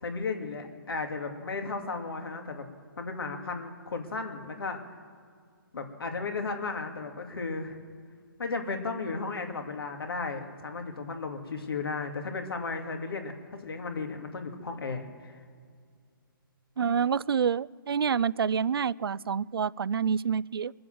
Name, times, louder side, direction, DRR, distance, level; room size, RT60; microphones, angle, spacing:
voice 1, 0.0-2.7 3.0-5.0 5.7-7.8 8.4-15.4, left 4 dB, 80° left, 4 dB, 2.4 m, -35 dB
voice 2, 16.8-20.7, right 7 dB, 85° right, 21 dB, 0.4 m, -27 dB
22.5 x 7.8 x 7.7 m, 2.1 s
hypercardioid pair, 150°, 12 cm